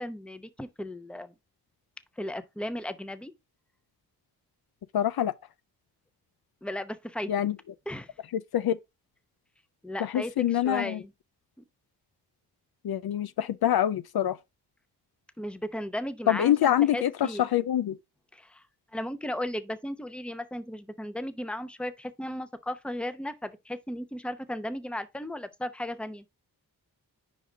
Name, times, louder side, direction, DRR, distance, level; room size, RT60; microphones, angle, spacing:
voice 1, 0.0-1.3 2.2-3.3 6.6-7.3 7.9-8.1 9.8-11.1 15.4-17.5 18.3-18.6 18.9-26.2, left 1 dB, 5° left, 0.7 m, -35 dB
voice 2, 4.9-5.3 7.3-7.6 8.3-8.8 10.0-11.0 12.8-14.4 16.3-18.0, left 11 dB, 65° left, 0.5 m, -25 dB
4.9 x 4.0 x 5.0 m
cardioid pair, 50°, 40 cm